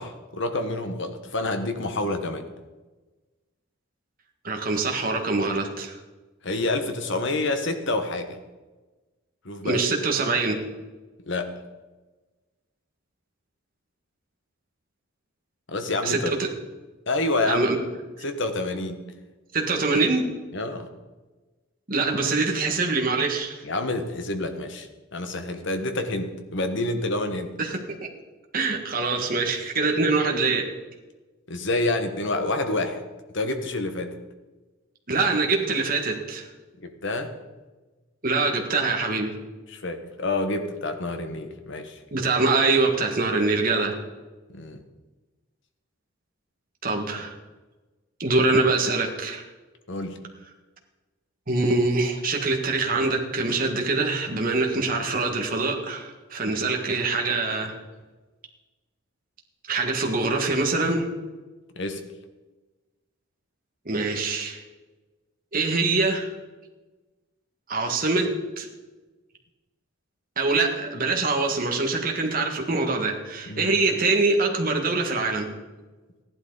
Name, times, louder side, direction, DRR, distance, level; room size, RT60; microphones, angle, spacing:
voice 1, 0.0-2.4 6.4-8.4 9.4-9.8 11.3-11.5 15.7-16.3 17.1-17.7 18.2-19.0 20.5-20.9 23.6-27.5 31.5-33.0 33.3-34.1 36.8-37.3 39.7-42.0 44.5-44.8 49.9-50.2 61.8-62.0 73.5-73.7, left 2 dB, 55° left, 7 dB, 1.3 m, -28 dB
voice 2, 4.4-6.0 9.6-10.6 16.0-16.5 17.5-17.8 19.5-20.3 21.9-23.6 27.6-28.1 28.5-30.7 35.1-36.5 38.2-39.4 42.1-44.0 46.8-47.4 48.2-49.4 51.5-57.7 59.7-61.1 63.9-64.6 65.5-66.3 67.7-68.7 70.4-75.5, right 3 dB, 40° right, 2 dB, 1.7 m, -24 dB
15.0 x 11.5 x 4.0 m, 1.2 s
head